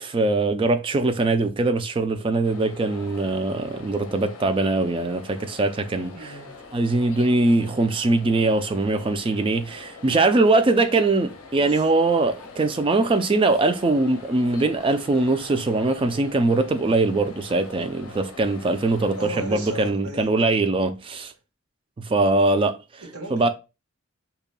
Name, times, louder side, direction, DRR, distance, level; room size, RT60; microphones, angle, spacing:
voice 1, 0.0-6.1 6.7-21.3 22.0-22.8 23.3-23.5, right 2 dB, 25° right, 0.3 m, -22 dB
sound 1, 2.4-19.9, left 4 dB, 70° left, 0.6 m, -43 dB
voice 2, 6.1-6.6 11.5-11.9 19.1-20.4 23.0-23.5, right 1 dB, 90° right, 1.2 m, -37 dB
5.2 x 2.8 x 2.2 m
head